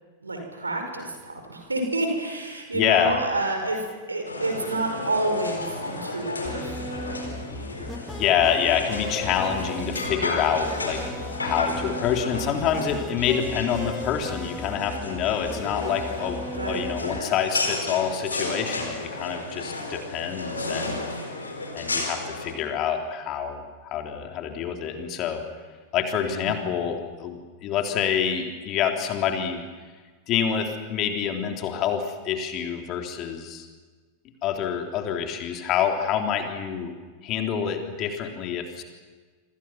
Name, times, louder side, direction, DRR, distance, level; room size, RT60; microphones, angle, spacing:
voice 1, 0.2-6.8 16.6-16.9 26.3-26.7, right 2 dB, 80° right, 4 dB, 5.5 m, -29 dB
voice 2, 2.7-3.2 8.2-11.0 11.4-21.1 21.7-25.4 25.9-29.6 30.3-33.7 34.4-36.9 37.2-38.8, left 8 dB, 35° left, 4 dB, 3.3 m, -27 dB
sound 1, 4.3-22.5, left 2 dB, 80° left, 4.2 m, -33 dB
sound 2, 6.4-17.2, left 1 dB, 5° left, 0.8 m, -37 dB
27.5 x 26.0 x 6.0 m, 1.4 s
figure-of-eight pair, 90°, 0 cm